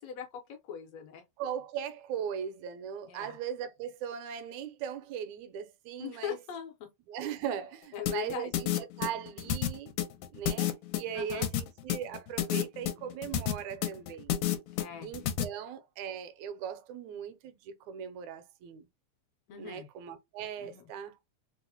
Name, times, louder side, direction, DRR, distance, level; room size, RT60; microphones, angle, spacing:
voice 1, 0.0-1.2 3.1-3.4 6.0-6.9 7.9-8.5 11.1-11.5 14.8-15.1 19.5-19.9 20.6-20.8, left 9 dB, 75° left, 1.6 m, -40 dB
voice 2, 1.4-6.4 7.1-9.9 10.3-14.3 15.0-18.9 19.6-21.2, right 9 dB, 80° right, 1.9 m, -39 dB
sound 1, 8.1-15.4, left 11 dB, 90° left, 2.1 m, -30 dB
4.7 x 2.1 x 2.6 m
omnidirectional pair, 3.4 m